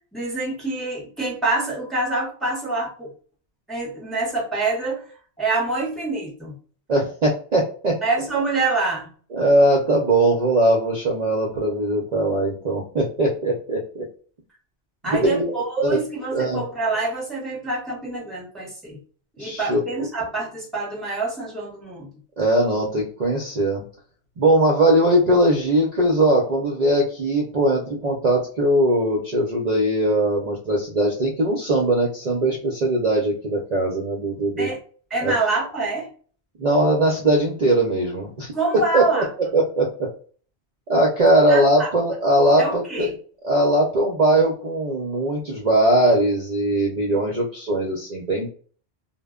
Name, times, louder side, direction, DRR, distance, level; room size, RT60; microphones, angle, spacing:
voice 1, 0.1-3.1 3.7-5.1 5.4-6.6 8.0-9.1 15.0-19.0 19.4-22.1 34.6-34.8 35.1-36.1 38.5-39.3 41.5-41.9 42.6-43.1, right 3 dB, ahead, -3 dB, 0.7 m, -26 dB
voice 2, 6.9-8.0 9.3-14.1 15.0-15.5 16.3-16.6 19.4-20.0 22.4-23.8 24.4-34.7 35.2-35.3 36.6-39.2 39.5-40.1 40.9-43.1 43.4-48.5, right 1 dB, 50° right, -1 dB, 0.6 m, -20 dB
2.1 x 2.0 x 3.5 m, 0.42 s
omnidirectional pair, 1.1 m